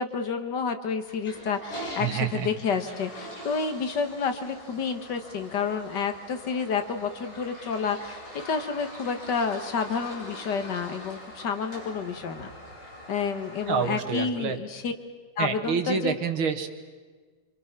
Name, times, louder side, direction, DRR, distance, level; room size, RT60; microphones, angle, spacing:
voice 1, 0.0-12.5 13.1-14.9 15.4-16.2, left 5 dB, 60° left, 7 dB, 1.9 m, -30 dB
Toilet flush, 1.0-14.0, left 1 dB, 30° left, 6.8 m, -43 dB
voice 2, 2.0-2.5 13.7-14.6 15.4-16.7, right 6 dB, 90° right, 8 dB, 2.2 m, -27 dB
26.0 x 25.5 x 6.0 m, 1.4 s
omnidirectional pair, 2.2 m